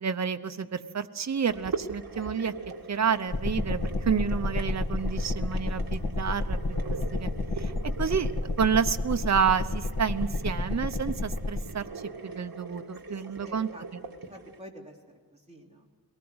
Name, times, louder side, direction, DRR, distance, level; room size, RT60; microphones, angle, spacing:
voice 1, 0.0-2.5 2.9-6.6 7.2-7.3 7.6-7.7 8.0-8.3 8.6-11.9 12.2-13.7, right 7 dB, 45° right, 9 dB, 0.8 m, -29 dB
sound 1, 1.5-14.6, right 4 dB, 60° right, 1.8 m, -42 dB
sound 2, 3.3-11.6, left 2 dB, 65° left, 2.4 m, -30 dB
voice 2, 13.1-15.0 15.3-15.9, equal, 15° right, -1 dB, 3.2 m, -48 dB
22.5 x 18.5 x 8.0 m, 1.5 s
wide cardioid pair, 125°, 39 cm